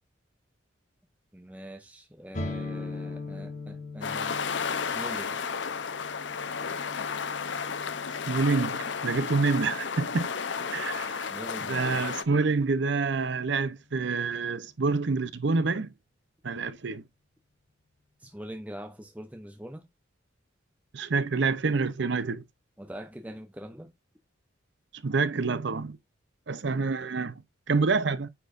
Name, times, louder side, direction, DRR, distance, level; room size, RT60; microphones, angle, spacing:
voice 1, 1.3-4.4 4.8-5.4 11.3-12.1 18.2-19.9 22.8-23.9, equal, 10° right, 0.6 m, -43 dB
sound 1, 2.3-10.0, left 3 dB, 40° left, 1.3 m, -41 dB
sound 2, 4.0-12.2, left 6 dB, 65° left, 0.7 m, -33 dB
voice 2, 8.3-10.3 10.7-11.3 11.7-15.9 16.4-17.0 20.9-22.4 25.0-26.0 26.5-27.4 27.7-28.3, right 4 dB, 65° right, 0.6 m, -27 dB
9.0 x 4.4 x 2.5 m
head